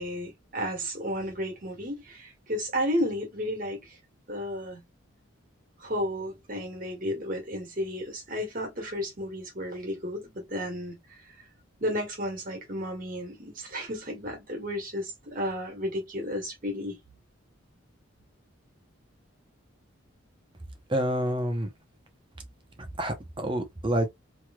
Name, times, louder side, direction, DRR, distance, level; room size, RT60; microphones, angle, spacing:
voice 1, 0.0-4.0 4.3-4.8 5.8-11.2 11.8-17.0, equal, 40° right, 1.5 m, -33 dB
voice 2, 20.9-21.7 23.0-24.1, right 1 dB, 25° right, 0.6 m, -28 dB
3.1 x 3.0 x 2.2 m
head